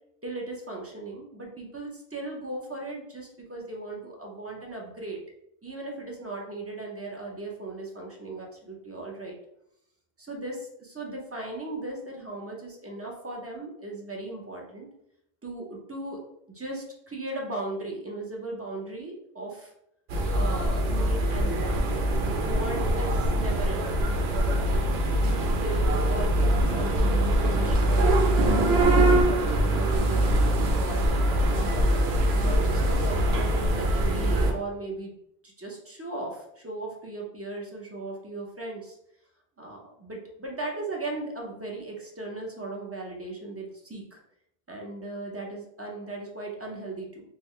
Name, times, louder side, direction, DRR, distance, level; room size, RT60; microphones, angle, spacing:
voice 1, 0.2-5.2 5.6-9.3 10.2-14.9 15.4-16.2 16.5-19.7 20.3-21.9 22.2-23.9 24.6-24.8 25.1-30.4 30.8-31.1 31.5-35.1 35.4-39.0 39.6-44.2 44.7-47.2, right 2 dB, 20° right, -1 dB, 0.5 m, -37 dB
sound 1, 20.1-34.5, right 1 dB, 75° right, 0.8 m, -23 dB
3.7 x 2.1 x 3.1 m, 0.76 s
omnidirectional pair, 1.1 m